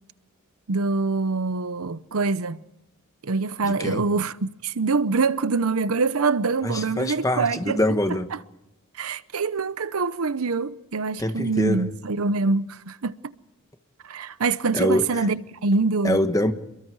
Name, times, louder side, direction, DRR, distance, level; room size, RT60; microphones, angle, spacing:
voice 1, 0.7-2.6 3.2-7.8 8.3-8.4 9.0-13.1 14.0-16.2, right 4 dB, 85° right, 0.8 m, -25 dB
voice 2, 3.6-4.1 6.6-8.3 11.2-11.9 14.7-15.3 16.0-16.5, left 1 dB, 15° left, 1.3 m, -24 dB
28.5 x 22.5 x 4.8 m
head